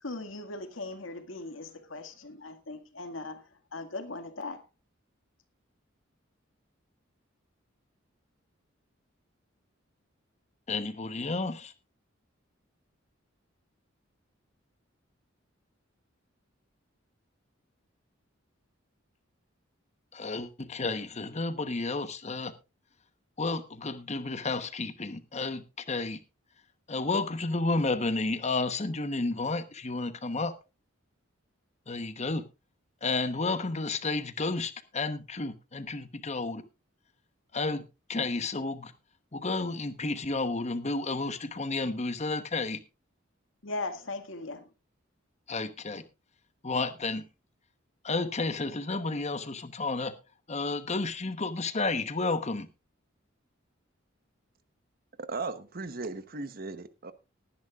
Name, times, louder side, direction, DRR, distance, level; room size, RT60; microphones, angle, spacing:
voice 1, 0.0-4.6 43.6-44.7, left 2 dB, 75° left, 2.0 m, -39 dB
voice 2, 10.7-11.7 20.1-22.5 23.4-26.2 26.9-30.5 31.9-32.4 33.0-36.6 37.5-37.8 38.1-38.9 39.3-42.8 45.5-46.0 46.6-47.2 48.0-50.1 50.5-52.7, left 3 dB, 35° left, 1.1 m, -31 dB
voice 3, 55.3-57.1, right 3 dB, 50° right, 1.0 m, -37 dB
19.5 x 10.5 x 2.4 m
head